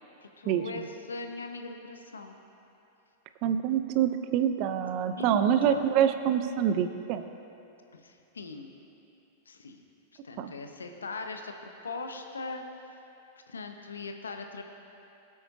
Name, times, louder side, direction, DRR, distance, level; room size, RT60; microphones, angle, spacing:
voice 1, 0.2-2.4 5.2-5.9 7.9-8.7 9.5-9.8 10.2-13.1 13.5-14.6, left 3 dB, 80° left, 5 dB, 0.9 m, -40 dB
voice 2, 3.4-7.2 10.4-10.5, right 9 dB, 45° right, 9 dB, 0.6 m, -26 dB
19.0 x 8.4 x 2.8 m, 2.7 s
figure-of-eight pair, 95°, 0 cm